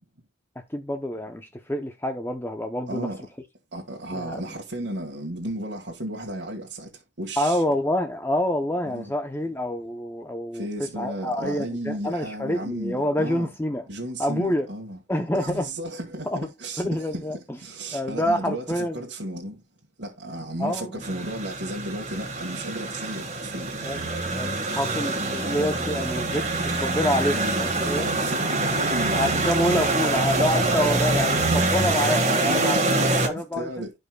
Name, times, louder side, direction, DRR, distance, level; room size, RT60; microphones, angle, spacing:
voice 1, 0.7-3.1 4.1-4.4 7.4-10.7 11.0-13.9 14.2-14.7 15.1-15.7 16.3-16.5 16.8-17.4 17.9-19.0 20.6-21.0 23.8-24.1 24.4-28.1 29.1-33.7, left 1 dB, 10° left, 0.7 m, -27 dB
voice 2, 2.9-3.2 3.7-7.6 8.8-9.1 10.5-13.5 13.9-15.0 15.3-19.6 20.0-23.7 25.4-25.7 27.3-27.7 28.0-29.4 30.1-30.2 30.8-31.5 32.4-33.9, right 1 dB, 60° right, 1.8 m, -34 dB
sound 1, 21.0-33.3, right 2 dB, 35° right, 1.7 m, -25 dB
15.5 x 5.3 x 2.3 m
head